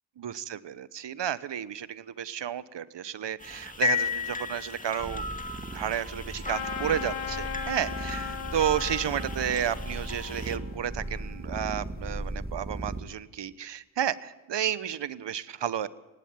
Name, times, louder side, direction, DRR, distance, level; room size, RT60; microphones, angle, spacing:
voice 1, 0.2-5.2 5.7-15.9, right 9 dB, 60° right, 17 dB, 1.1 m, -32 dB
sound 1, 3.4-10.6, left 5 dB, 15° left, 2.1 m, -35 dB
sound 2, 5.0-13.0, right 2 dB, 20° right, 2.2 m, -37 dB
Trumpet, 6.4-11.5, left 8 dB, 80° left, 1.4 m, -38 dB
18.5 x 16.5 x 8.9 m, 1.1 s
supercardioid pair, 40°, 47 cm